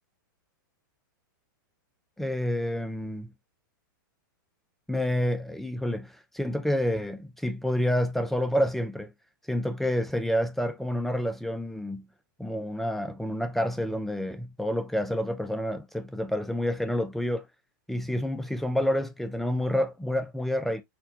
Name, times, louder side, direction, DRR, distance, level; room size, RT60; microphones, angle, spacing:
voice 1, 2.2-3.3 4.9-9.1 9.5-12.1 12.4-17.4 17.9-20.8, equal, ahead, 0.3 m, -28 dB
4.3 x 2.3 x 2.6 m
hypercardioid pair, 140°, 11 cm